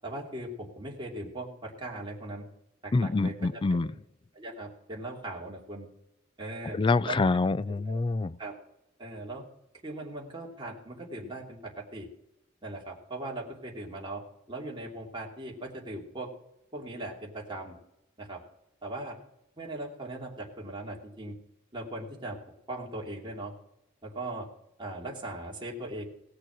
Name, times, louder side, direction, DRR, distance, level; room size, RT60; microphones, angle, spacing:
voice 1, 0.0-2.5 2.8-3.4 3.7-3.8 4.3-5.9 6.4-7.3 7.7-8.0 8.4-8.5 9.0-9.4 9.8-12.1 12.6-16.3 16.7-17.8 18.2-18.4 18.8-19.2 19.6-21.4 21.7-22.4 22.7-23.5 24.0-24.5 24.8-26.0, right 2 dB, 25° right, -2 dB, 2.9 m, -39 dB
voice 2, 2.9-3.9 6.7-8.4, left 3 dB, 25° left, 18 dB, 0.3 m, -26 dB
18.0 x 6.7 x 6.1 m, 0.84 s
head